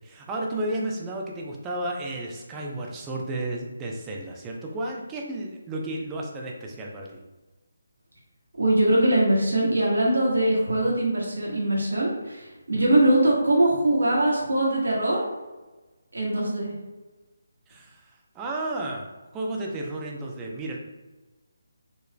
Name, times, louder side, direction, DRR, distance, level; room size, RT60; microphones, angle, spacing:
voice 1, 0.0-7.1 12.9-13.0 17.7-19.1 19.3-20.8, right 1 dB, 15° right, -1 dB, 0.6 m, -32 dB
voice 2, 8.6-15.2 16.1-16.7, right 1 dB, 75° right, -3 dB, 1.5 m, -22 dB
4.7 x 3.1 x 2.2 m, 1.2 s
figure-of-eight pair, 150°, 0 cm